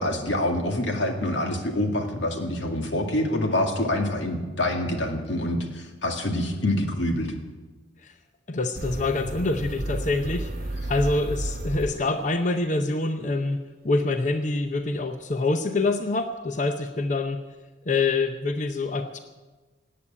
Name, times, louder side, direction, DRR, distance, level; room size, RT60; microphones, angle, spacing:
voice 1, 0.0-7.3, left 1 dB, 90° left, 4 dB, 2.1 m, -26 dB
voice 2, 8.5-10.5 10.9-17.4 17.9-19.2, left 3 dB, 40° left, 8 dB, 0.7 m, -26 dB
sound 1, 8.8-12.5, right 1 dB, 55° right, 1.0 m, -32 dB
18.0 x 8.5 x 8.7 m, 1.2 s
head